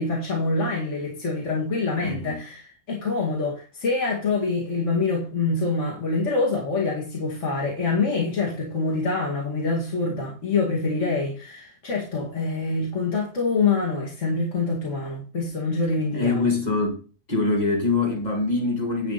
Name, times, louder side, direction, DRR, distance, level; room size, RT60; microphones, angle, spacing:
voice 1, 0.0-16.4, left 3 dB, 75° left, 2.5 m, -25 dB
voice 2, 2.0-2.4 16.1-17.0 17.3-19.1, left 3 dB, 35° left, 2.6 m, -24 dB
10.5 x 5.9 x 4.1 m
omnidirectional pair, 1.3 m